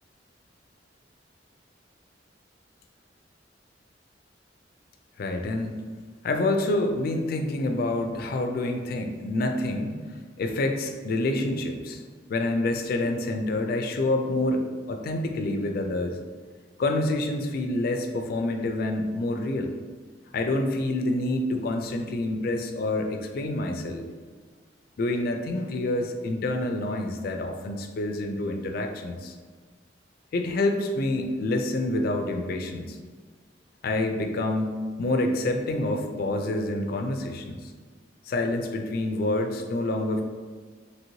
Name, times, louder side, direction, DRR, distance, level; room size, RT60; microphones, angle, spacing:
voice 1, 5.2-5.8 6.2-10.0 10.4-12.0 12.3-16.2 16.8-19.7 20.3-24.0 25.0-29.3 30.3-33.0 33.8-37.6 38.3-40.2, left 2 dB, 55° left, 5 dB, 0.3 m, -27 dB
2.9 x 2.9 x 2.7 m, 1.5 s
head